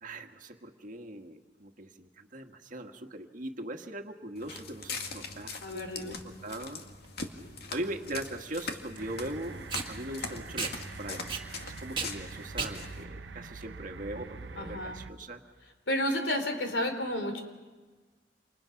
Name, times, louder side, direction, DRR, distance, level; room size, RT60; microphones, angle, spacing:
voice 1, 0.0-6.8 7.7-11.2 11.6-15.4, right 1 dB, 50° right, 4 dB, 1.7 m, -40 dB
Walk footsteps, 4.4-13.0, left 4 dB, 60° left, 2.1 m, -42 dB
voice 2, 5.6-6.2 14.6-15.0 15.9-17.4, left 1 dB, 85° left, 6 dB, 3.6 m, -31 dB
Packing tape duct tape, 6.9-14.4, right 5 dB, 30° right, 2.1 m, -39 dB
sound 1, 9.0-15.1, right 4 dB, 90° right, 0.8 m, -45 dB
29.0 x 27.5 x 5.9 m, 1.4 s
head